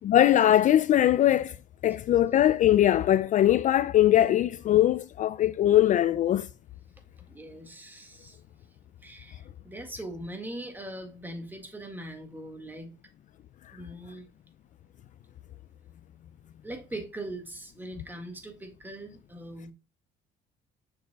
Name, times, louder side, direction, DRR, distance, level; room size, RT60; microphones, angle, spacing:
voice 1, 0.0-1.5 1.8-6.5, left 12 dB, 50° left, 0.4 m, -21 dB
voice 2, 7.3-8.4 9.0-12.9 13.7-14.3 16.6-19.7, right 1 dB, 10° right, 1.9 m, -41 dB
6.7 x 6.6 x 2.3 m
cardioid pair, 110°, 17 cm